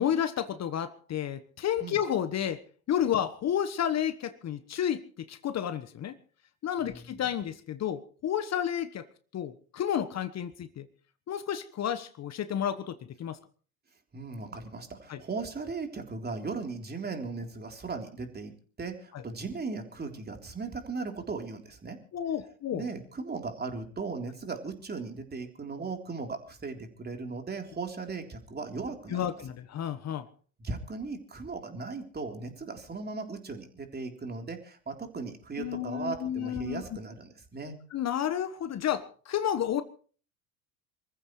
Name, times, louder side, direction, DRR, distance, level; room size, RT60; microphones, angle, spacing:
voice 1, 0.0-6.2 6.6-9.1 9.3-10.9 11.3-13.4 15.1-15.2 22.1-22.9 29.1-30.3 35.6-36.8 37.9-39.8, left 9 dB, 40° left, 11 dB, 1.3 m, -31 dB
voice 2, 6.8-7.2 14.1-22.0 22.7-29.3 30.6-37.8, right 4 dB, 20° right, 4 dB, 3.6 m, -37 dB
27.0 x 14.5 x 3.2 m, 0.41 s
hypercardioid pair, 75°, 42 cm